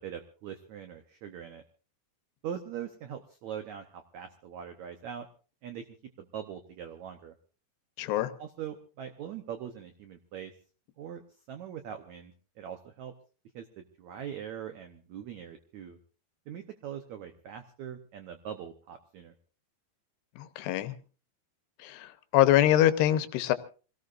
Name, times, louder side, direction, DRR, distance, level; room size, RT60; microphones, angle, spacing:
voice 1, 0.0-1.6 2.4-5.3 5.6-5.8 6.2-7.3 8.4-10.5 11.0-11.2 11.5-13.1 13.5-16.0 16.5-19.3, right 9 dB, 85° right, 7 dB, 1.6 m, -42 dB
voice 2, 8.0-8.3 20.4-20.9 21.8-23.5, left 13 dB, 85° left, 11 dB, 3.0 m, -24 dB
26.5 x 17.5 x 2.5 m, 0.37 s
omnidirectional pair, 4.7 m